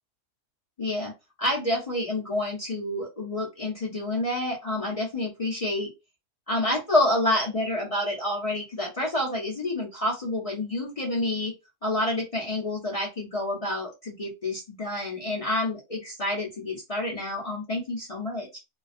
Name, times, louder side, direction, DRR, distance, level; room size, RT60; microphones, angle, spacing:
voice 1, 0.8-1.1 1.4-5.9 6.5-11.5 11.8-18.6, left 1 dB, 45° left, -3 dB, 0.4 m, -28 dB
2.3 x 2.2 x 2.4 m, 0.24 s
omnidirectional pair, 1.5 m